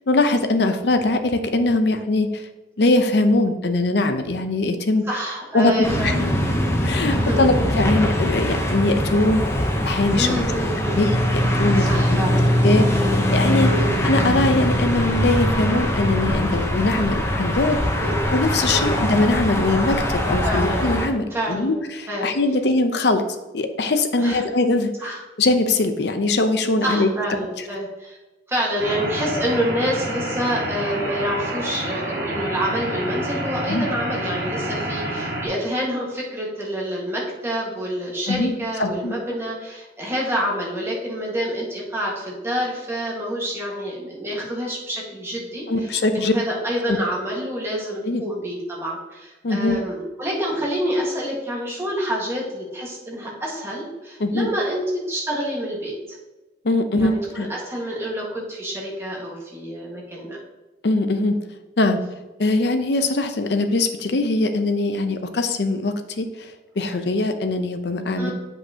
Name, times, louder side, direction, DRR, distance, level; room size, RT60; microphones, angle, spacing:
voice 1, 0.1-2.4 2.8-5.0 5.5-5.7 6.0-6.2 6.8-9.4 9.8-10.5 10.9-13.7 14.0-17.8 18.3-23.2 23.5-24.9 25.4-27.1 33.7-33.9 38.3-39.1 45.7-46.3 46.9-47.0 48.0-48.2 49.4-49.8 54.2-54.5 56.6-57.5 60.8-61.4 61.8-62.0 62.4-68.3, left 2 dB, 65° left, 8 dB, 0.6 m, -21 dB
voice 2, 5.1-6.3 7.1-7.4 10.1-11.0 11.8-12.5 13.6-13.9 18.0-18.2 18.7-18.9 20.4-20.9 21.3-21.7 22.1-22.3 24.1-24.4 25.0-25.2 26.8-28.2 28.5-56.2 56.8-60.4 68.2-68.3, equal, 15° right, -3 dB, 1.5 m, -27 dB
sound 1, 5.8-21.1, equal, 15° left, 0.8 m, -22 dB
sound 2, 28.8-35.5, right 1 dB, 55° right, 1.4 m, -28 dB
7.4 x 5.5 x 2.8 m, 1.1 s
head